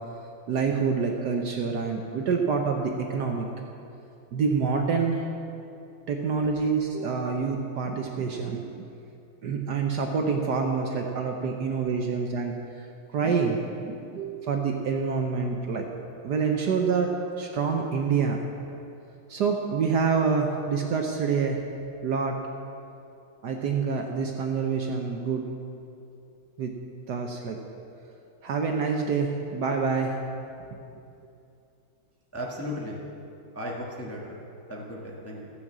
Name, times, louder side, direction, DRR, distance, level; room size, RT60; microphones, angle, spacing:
voice 1, 0.5-3.5 4.3-5.3 6.1-8.9 9.4-12.5 13.1-15.9 16.2-18.4 19.3-21.6 22.0-22.4 23.4-25.5 26.6-26.7 27.1-27.6 28.4-30.2, right 5 dB, 60° right, 2 dB, 1.2 m, -27 dB
voice 2, 32.3-33.0 33.5-34.3 34.7-35.5, equal, 10° left, -3 dB, 1.0 m, -35 dB
14.0 x 6.5 x 7.4 m, 2.7 s
omnidirectional pair, 2.2 m